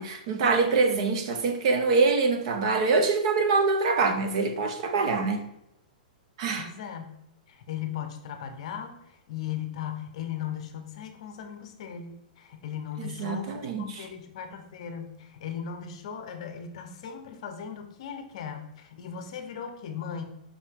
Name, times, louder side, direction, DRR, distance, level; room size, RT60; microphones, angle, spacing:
voice 1, 0.0-5.5 6.4-6.7 13.0-14.0, right 4 dB, 40° right, 0.7 m, -25 dB
voice 2, 6.6-7.2 7.5-20.2, left 8 dB, 40° left, 0.8 m, -37 dB
5.5 x 5.2 x 3.5 m
hypercardioid pair, 175°, 5 cm